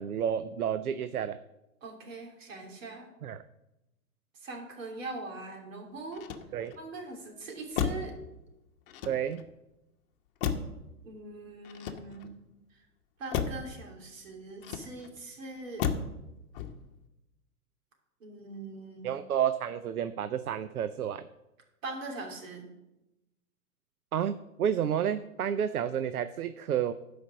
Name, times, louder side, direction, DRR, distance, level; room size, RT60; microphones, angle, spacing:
voice 1, 0.0-1.4 3.2-3.4 6.5-6.7 9.0-9.5 19.0-21.3 24.1-26.9, right 9 dB, 75° right, 12 dB, 0.6 m, -30 dB
voice 2, 1.8-3.1 4.4-6.2 6.8-8.1 11.0-12.3 13.2-15.9 18.2-19.1 21.8-22.6, right 2 dB, 60° right, 1 dB, 3.1 m, -42 dB
Motor vehicle (road), 6.1-6.9 7.7-8.2 8.9-9.5 10.4-10.9 11.6-12.4 13.3-13.7 14.6-15.2 15.8-16.2 16.5-17.0, left 7 dB, 40° left, 1.0 m, -34 dB
12.0 x 5.2 x 6.2 m, 0.94 s
figure-of-eight pair, 120°, 44 cm